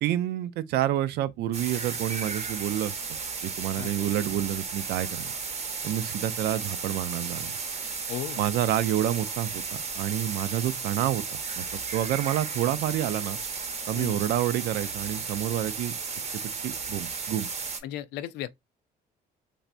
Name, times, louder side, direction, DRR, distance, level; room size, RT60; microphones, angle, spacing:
voice 1, 0.0-3.0 3.4-5.3 5.8-7.5 8.4-9.6 9.9-11.2 11.6-11.7 11.9-13.4 13.9-15.9 16.6-17.5, right 12 dB, 75° right, 0.5 m, -28 dB
sound 1, 1.5-17.8, right 5 dB, 40° right, 0.9 m, -34 dB
voice 2, 8.1-8.7 14.0-14.2 17.8-18.5, left 12 dB, 80° left, 0.4 m, -36 dB
3.3 x 2.6 x 2.5 m
cardioid pair, 110°, 17 cm